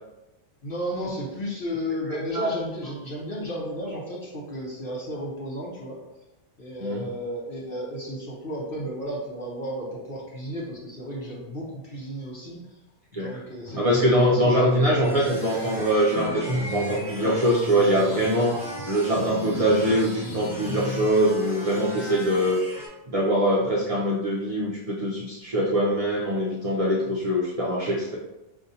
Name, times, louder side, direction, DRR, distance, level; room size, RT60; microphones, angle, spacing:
voice 1, 0.6-6.0 6.6-12.8 13.1-15.0, equal, 55° left, -4 dB, 0.9 m, -33 dB
voice 2, 2.1-2.5 6.8-7.0 13.1-13.4 13.8-18.6 18.9-22.6 23.1-28.2, equal, 50° right, -3 dB, 0.4 m, -23 dB
sound 1, 13.7-21.1, left 1 dB, 80° left, 1.1 m, -37 dB
sound 2, 15.0-22.9, equal, ahead, 0.8 m, -38 dB
4.9 x 2.6 x 2.7 m, 0.97 s
omnidirectional pair, 1.2 m